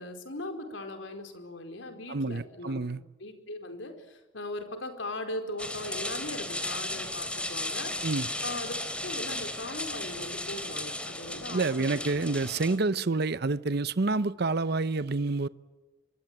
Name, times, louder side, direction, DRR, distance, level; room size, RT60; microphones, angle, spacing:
voice 1, 0.0-2.9 3.2-7.9 8.4-8.7 9.0-12.2, left 1 dB, 80° left, 4.6 m, -39 dB
voice 2, 2.1-3.0 8.0-8.3 11.5-15.5, right 3 dB, 60° right, 0.8 m, -28 dB
sound 1, 5.6-12.8, left 1 dB, 5° left, 3.1 m, -35 dB
25.0 x 23.5 x 9.2 m
head